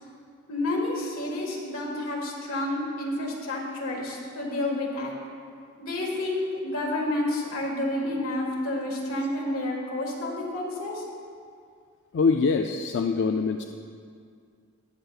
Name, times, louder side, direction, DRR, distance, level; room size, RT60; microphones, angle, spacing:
voice 1, 0.5-5.1 5.8-11.0, left 1 dB, 80° left, -2 dB, 1.7 m, -30 dB
voice 2, 12.1-13.6, left 4 dB, 60° left, 4 dB, 0.4 m, -24 dB
18.5 x 6.6 x 2.4 m, 2.2 s
head